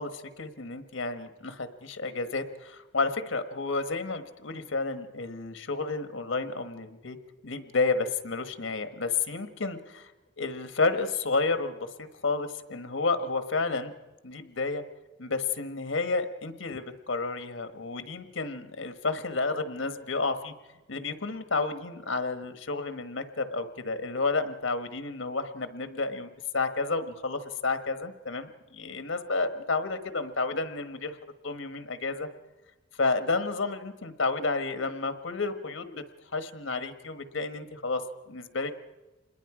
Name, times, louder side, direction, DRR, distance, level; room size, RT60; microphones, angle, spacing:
voice 1, 0.0-7.2 7.4-10.1 10.4-13.9 14.2-14.8 15.2-20.5 20.9-31.2 31.4-32.3 33.0-36.0 36.3-38.7, left 3 dB, 80° left, 9 dB, 1.3 m, -31 dB
27.0 x 21.0 x 4.9 m, 1.1 s
head